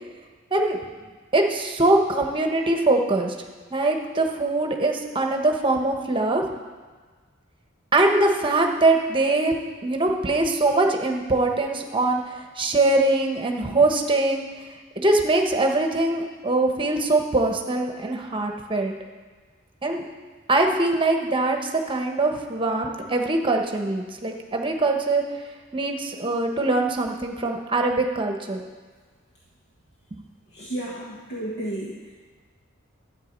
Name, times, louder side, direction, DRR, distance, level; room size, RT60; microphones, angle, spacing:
voice 1, 1.3-3.3 3.7-6.4 7.9-9.5 9.8-12.2 12.6-14.4 15.0-18.9 19.8-20.0 20.5-25.2 25.7-28.6 30.1-30.2, right 2 dB, 25° right, 3 dB, 1.1 m, -22 dB
voice 2, 30.5-32.1, right 1 dB, 55° left, -4 dB, 1.4 m, -32 dB
12.0 x 8.5 x 5.3 m, 1.4 s
head